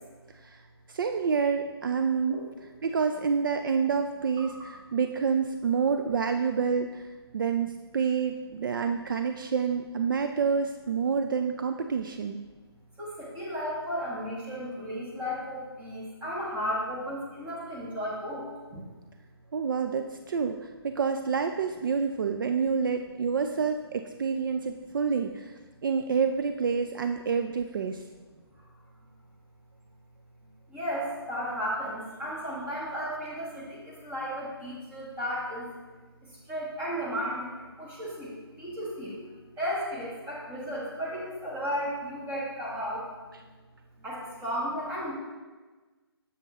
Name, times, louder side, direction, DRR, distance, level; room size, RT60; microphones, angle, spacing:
voice 1, 0.9-2.5 2.8-7.1 7.3-12.4 19.5-25.5 25.8-28.0, right 6 dB, 55° right, 6 dB, 0.4 m, -28 dB
voice 2, 13.0-18.9 28.6-28.7 30.7-35.7 36.2-39.2 39.6-43.1 44.0-45.1, equal, 10° right, -5 dB, 1.4 m, -34 dB
7.2 x 6.8 x 2.9 m, 1.3 s
figure-of-eight pair, 150°, 14 cm